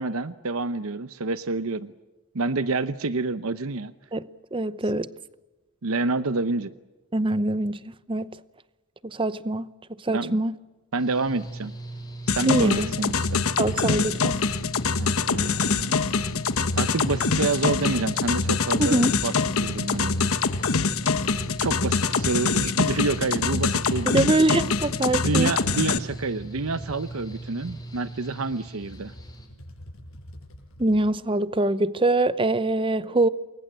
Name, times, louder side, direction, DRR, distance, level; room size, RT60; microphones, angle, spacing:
voice 1, 0.0-1.9 2.3-3.9 5.8-6.7 10.1-10.4 10.9-11.7 12.3-13.5 15.0-15.9 16.8-19.3 19.6-20.3 21.6-24.4 25.2-29.1, right 3 dB, 85° right, 0.9 m, -28 dB
voice 2, 4.1-5.1 7.1-8.3 9.0-9.7 10.0-10.5 12.4-12.9 13.6-14.4 18.8-19.2 24.1-25.5 30.8-33.3, right 2 dB, 25° right, 0.7 m, -24 dB
Mechanical fan, 11.0-29.5, right 2 dB, 20° left, 5.9 m, -39 dB
sound 1, 11.4-13.8 14.0-14.7 15.0-19.8 20.1-31.1, equal, 75° left, 7.2 m, -48 dB
sound 2, 12.3-26.0, left 5 dB, 90° left, 1.2 m, -25 dB
28.5 x 22.0 x 7.7 m
head